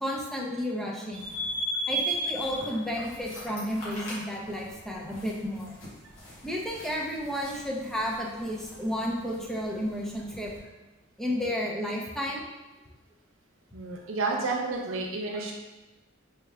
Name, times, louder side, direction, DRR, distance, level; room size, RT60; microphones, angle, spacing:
voice 1, 0.0-1.3 1.9-5.7 6.4-10.5 11.2-12.5, equal, ahead, -3 dB, 0.5 m, -32 dB
sound 1, 1.1-10.6, right 1 dB, 85° left, 1.4 m, -37 dB
voice 2, 13.7-15.5, right 3 dB, 90° right, 0 dB, 0.7 m, -30 dB
3.3 x 3.2 x 3.4 m, 1.1 s
head